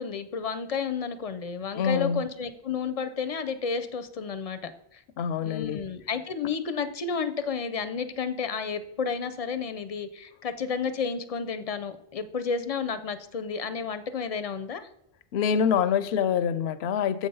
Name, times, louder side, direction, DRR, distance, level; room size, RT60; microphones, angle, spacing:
voice 1, 0.0-5.0 5.4-14.9, left 5 dB, 45° left, 11 dB, 0.6 m, -31 dB
voice 2, 1.7-2.2 5.2-5.8 15.3-17.3, left 7 dB, 80° left, 14 dB, 0.8 m, -25 dB
7.3 x 5.2 x 5.4 m, 0.83 s
omnidirectional pair, 1.1 m